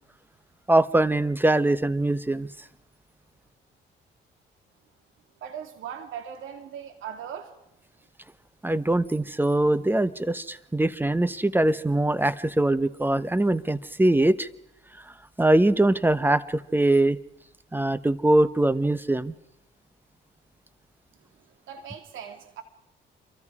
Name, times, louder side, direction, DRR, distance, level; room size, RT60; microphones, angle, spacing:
voice 1, 0.7-2.5 8.6-14.5 15.4-17.2 17.7-19.3, right 1 dB, 10° right, 0.9 m, -22 dB
voice 2, 5.4-7.5 21.7-22.6, right 8 dB, 80° right, 2.8 m, -39 dB
27.5 x 23.5 x 4.9 m
cardioid pair, 90°, 20 cm